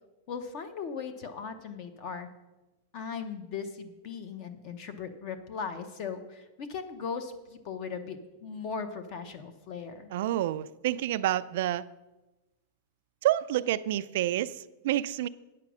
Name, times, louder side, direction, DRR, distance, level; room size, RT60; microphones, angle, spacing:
voice 1, 0.3-2.3 2.9-10.1, left 6 dB, 35° left, 0.8 m, -38 dB
voice 2, 10.1-11.9 13.2-15.3, right 13 dB, 55° right, 0.4 m, -28 dB
9.2 x 7.6 x 6.1 m
supercardioid pair, 170°, 0 cm